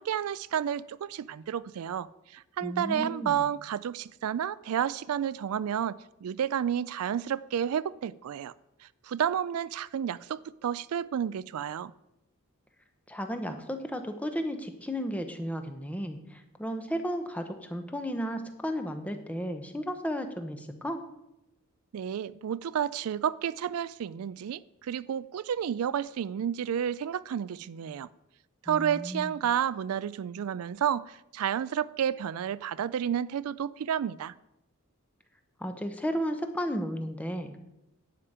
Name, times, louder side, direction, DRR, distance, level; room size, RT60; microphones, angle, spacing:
voice 1, 0.0-8.5 9.0-11.9 21.9-28.1 28.6-34.3, right 9 dB, 80° right, 0.3 m, -31 dB
voice 2, 2.6-3.4 13.1-21.0 28.7-29.3 35.6-37.6, equal, 5° left, 0.8 m, -34 dB
11.5 x 5.1 x 8.6 m
head